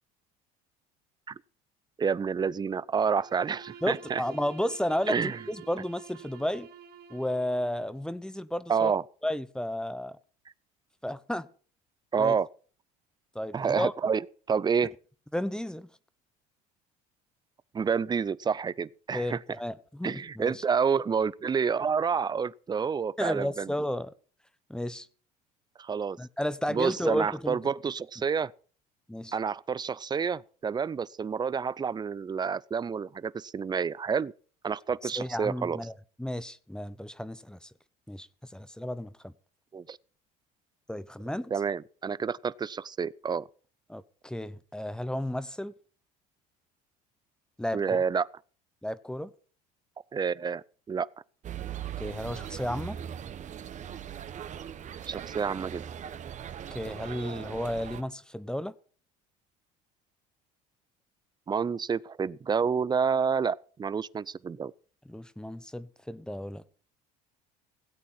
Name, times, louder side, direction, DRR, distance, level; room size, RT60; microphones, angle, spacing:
voice 1, 2.0-4.2 5.1-5.4 8.7-9.0 12.1-12.5 13.5-14.2 14.5-14.9 17.7-19.4 20.0-23.7 25.8-26.2 26.7-28.5 29.3-34.3 34.6-35.8 39.7-40.0 41.5-43.4 47.7-48.3 50.1-51.1 55.1-55.8 61.5-64.7, right 6 dB, 25° right, 0.6 m, -29 dB
Bowed string instrument, 3.1-8.0, right 7 dB, 60° right, 2.1 m, -49 dB
voice 2, 3.8-6.7 7.1-8.9 9.2-10.2 11.0-11.5 12.2-12.4 13.3-13.9 15.3-15.9 19.1-20.6 23.2-24.1 24.7-25.1 26.2-27.6 29.1-29.4 35.0-35.9 36.2-37.7 38.1-39.3 40.9-41.5 43.9-45.7 47.6-48.0 48.8-49.3 52.0-53.0 56.7-58.7 65.1-66.6, left 1 dB, 5° left, 0.8 m, -33 dB
sound 1, 51.4-58.0, right 9 dB, 40° right, 1.1 m, -40 dB
17.0 x 8.4 x 5.9 m
supercardioid pair, 90°, 18 cm